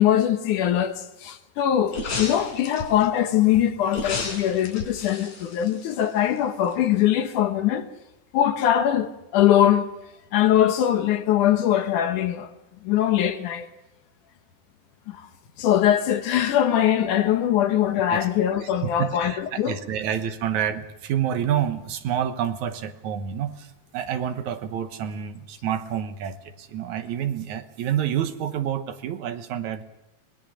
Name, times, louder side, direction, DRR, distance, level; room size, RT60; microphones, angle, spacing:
voice 1, 0.0-7.9 8.3-9.9 10.3-12.5 12.8-13.7 15.1-15.2 15.6-19.8, left 11 dB, 80° left, 2.8 m, -22 dB
sound 1, 1.9-3.1 3.9-6.4 6.7-6.8, left 3 dB, 60° left, 4.7 m, -33 dB
voice 2, 18.6-23.7 23.9-29.8, right 9 dB, 70° right, 2.5 m, -28 dB
24.5 x 20.5 x 6.4 m
omnidirectional pair, 3.6 m